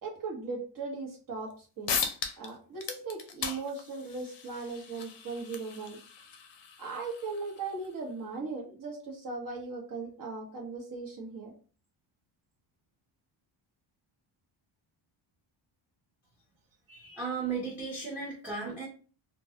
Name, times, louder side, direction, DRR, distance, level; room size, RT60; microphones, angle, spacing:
voice 1, 0.0-2.0 2.4-6.0 6.8-11.6, right 4 dB, 40° right, -1 dB, 0.9 m, -38 dB
sound 1, 1.5-1.6 1.9-2.5 2.8-7.9, left 6 dB, 55° left, 0.6 m, -38 dB
voice 2, 16.9-18.9, right 5 dB, 5° right, -5 dB, 0.6 m, -35 dB
2.2 x 2.2 x 2.7 m, 0.38 s
cardioid pair, 140°, 49 cm